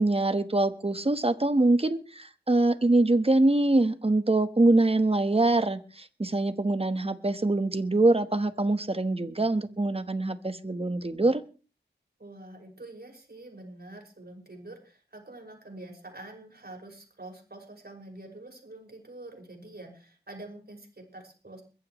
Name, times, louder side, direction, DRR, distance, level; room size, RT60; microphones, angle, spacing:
voice 1, 0.0-11.4, right 2 dB, 35° right, 10 dB, 1.3 m, -24 dB
voice 2, 12.2-21.6, right 2 dB, 60° right, 2 dB, 5.9 m, -46 dB
22.0 x 15.5 x 3.2 m, 0.37 s
wide cardioid pair, 70°, 18 cm